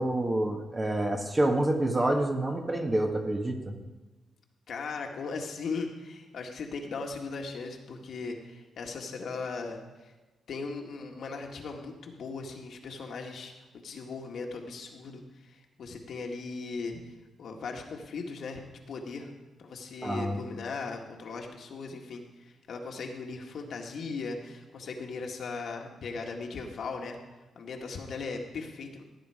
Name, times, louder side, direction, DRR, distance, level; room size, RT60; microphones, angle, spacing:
voice 1, 0.0-3.8 20.0-20.4, right 1 dB, 20° right, 3 dB, 1.6 m, -27 dB
voice 2, 4.7-10.1 10.5-19.3 19.6-27.2 27.6-29.0, left 4 dB, 60° left, 2 dB, 1.9 m, -38 dB
16.0 x 9.4 x 5.0 m, 1.2 s
cardioid pair, 120°, 0 cm